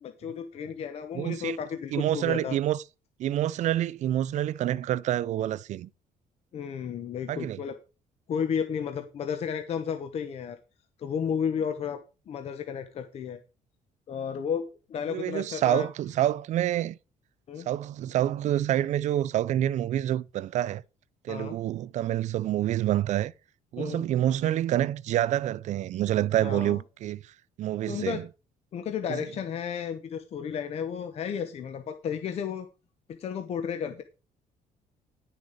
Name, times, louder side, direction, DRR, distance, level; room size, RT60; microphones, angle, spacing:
voice 1, 0.0-2.6 6.5-7.8 8.3-10.6 11.0-13.4 14.1-15.9 17.5-17.7 21.3-21.6 23.8-24.0 26.4-26.8 27.9-28.2 28.7-32.7 33.2-34.0, left 7 dB, 45° left, 1.0 m, -33 dB
voice 2, 1.1-1.6 1.9-2.8 3.2-5.9 7.3-7.6 15.1-17.0 17.7-20.8 21.2-23.3 23.7-27.2 27.6-28.2 29.1-29.2, right 12 dB, 55° right, 0.5 m, -27 dB
11.0 x 6.7 x 5.0 m
cardioid pair, 170°, 15 cm